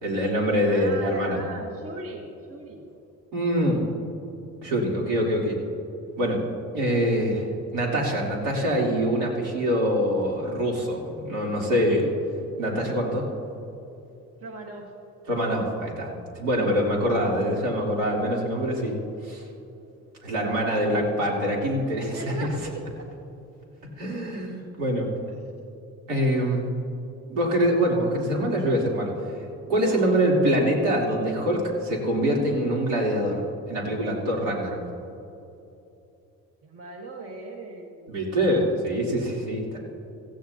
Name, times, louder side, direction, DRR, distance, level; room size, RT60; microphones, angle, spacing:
voice 1, 0.0-1.4 3.3-3.8 4.6-5.6 6.2-6.4 6.7-7.5 7.7-12.1 12.6-13.3 15.3-18.9 19.2-19.4 20.2-22.5 24.0-25.1 26.1-26.7 27.3-29.1 29.7-34.8 38.1-39.8, equal, 80° right, -3 dB, 3.4 m, -24 dB
voice 2, 0.7-2.9 11.6-12.2 14.4-14.9 20.7-21.2 22.1-23.0 29.8-30.4 36.6-38.1, right 2 dB, 45° right, 1 dB, 1.5 m, -39 dB
16.0 x 15.5 x 2.8 m, 2.8 s
cardioid pair, 100°, 32 cm